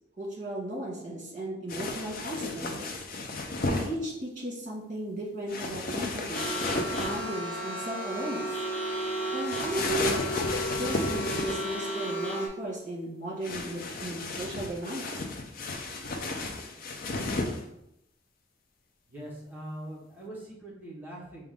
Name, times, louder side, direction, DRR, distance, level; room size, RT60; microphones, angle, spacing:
voice 1, 0.2-3.0 3.6-6.5 6.9-8.6 9.3-15.0, right 1 dB, 45° right, -4 dB, 1.6 m, -35 dB
sound 1, 1.7-3.9 5.5-7.4 9.4-11.8 13.4-17.6, left 2 dB, 50° left, 0.5 m, -33 dB
sound 2, 6.3-12.5, right 1 dB, 10° left, 1.1 m, -33 dB
voice 2, 19.1-21.5, right 1 dB, 10° right, -5 dB, 1.0 m, -42 dB
5.0 x 2.4 x 3.6 m, 0.81 s
head